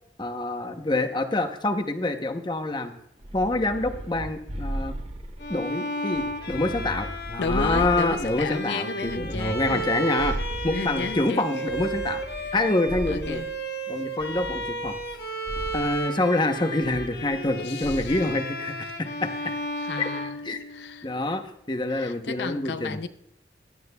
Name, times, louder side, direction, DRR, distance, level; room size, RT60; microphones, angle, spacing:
voice 1, 0.2-2.9 3.3-5.0 5.5-10.4 10.6-12.2 12.5-13.4 13.9-15.0 15.7-19.3 20.0-20.1 20.4-20.6 21.0-23.0, left 2 dB, 25° left, 0.8 m, -26 dB
sound 1, 3.2-5.6 6.1-8.6 9.0-11.2 11.7-13.6 14.2-15.2 15.4-15.9 16.8-17.5 17.8-18.3, right 1 dB, 35° right, 0.9 m, -36 dB
Bowed string instrument, 5.4-21.1, right 1 dB, 65° left, 1.2 m, -33 dB
voice 2, 7.4-9.9 10.6-11.6 12.4-12.5 13.1-13.5 17.6-18.1 19.8-20.4 20.7-21.1 21.9-23.1, left 4 dB, 80° left, 0.5 m, -33 dB
16.5 x 11.5 x 2.3 m
head